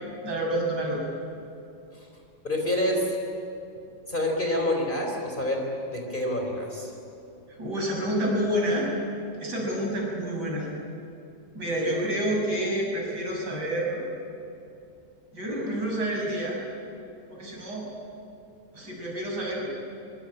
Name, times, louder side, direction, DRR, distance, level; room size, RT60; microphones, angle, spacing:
voice 1, 0.2-1.0 7.5-8.9 9.4-10.7 11.5-14.0 15.3-16.6 17.3-17.9 18.7-19.7, right 1 dB, 60° right, -2 dB, 7.2 m, -28 dB
voice 2, 2.4-3.1 4.1-5.6 5.9-6.9, left 1 dB, 25° left, 1 dB, 4.0 m, -27 dB
24.5 x 23.5 x 9.0 m, 2.7 s
omnidirectional pair, 2.1 m